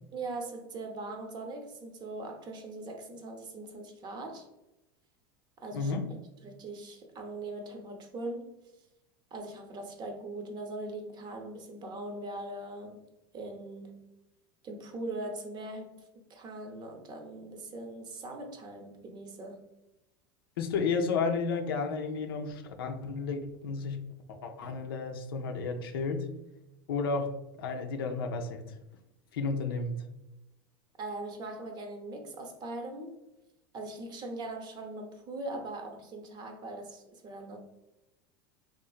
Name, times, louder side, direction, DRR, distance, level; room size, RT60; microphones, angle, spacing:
voice 1, 0.1-4.5 5.6-6.0 6.4-8.6 9.3-13.0 13.3-14.1 14.6-19.7 31.0-33.2 33.7-37.6, right 2 dB, 35° right, 0.6 m, -41 dB
voice 2, 20.6-24.0 24.3-26.3 26.9-27.3 27.6-28.6 29.3-29.9, left 4 dB, 80° left, 0.4 m, -32 dB
2.9 x 2.5 x 2.4 m
hypercardioid pair, 90°, 12 cm